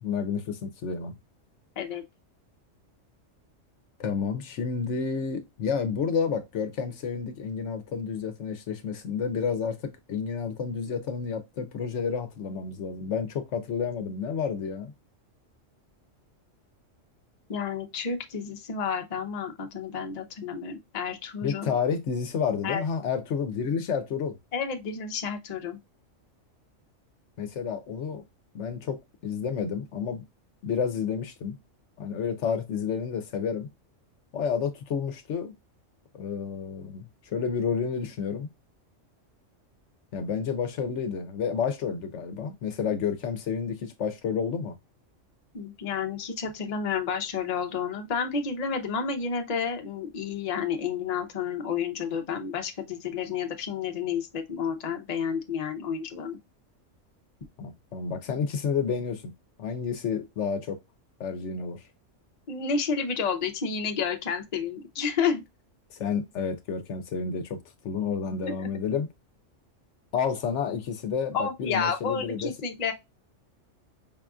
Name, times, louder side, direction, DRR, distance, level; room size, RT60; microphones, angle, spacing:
voice 1, 0.0-1.1 4.0-14.9 21.4-24.4 27.4-28.2 28.5-30.3 30.6-31.6 32.0-33.7 34.3-35.5 36.1-38.5 40.1-44.8 57.6-59.3 59.6-60.8 61.2-61.8 65.9-67.6 67.8-69.1 70.1-72.5, left 6 dB, 70° left, 0.9 m, -30 dB
voice 2, 17.5-21.7 22.6-22.8 24.5-25.8 45.5-56.4 62.5-65.4 68.4-68.7 71.3-72.9, left 6 dB, 40° left, 0.7 m, -30 dB
5.3 x 2.5 x 2.3 m
omnidirectional pair, 1.3 m